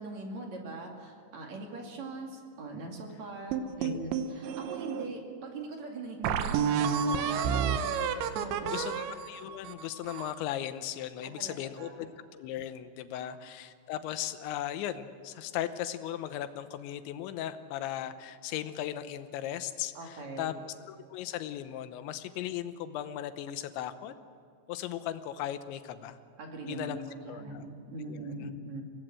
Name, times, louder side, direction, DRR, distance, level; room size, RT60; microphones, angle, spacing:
voice 1, 0.0-7.8 8.3-9.0 11.4-11.9 13.2-13.4 19.9-20.5 26.4-28.8, right 2 dB, 45° right, 1 dB, 3.2 m, -41 dB
sound 1, 3.5-5.1 5.6-5.7 6.2-10.4, right 7 dB, 85° right, 3.3 m, -30 dB
voice 2, 8.7-12.1 12.3-20.5 20.9-24.1 24.7-26.2 26.7-27.0 27.3-27.6 28.1-28.3, left 11 dB, 85° left, 11 dB, 3.2 m, -37 dB
24.0 x 17.5 x 7.7 m, 2.3 s
omnidirectional pair, 5.2 m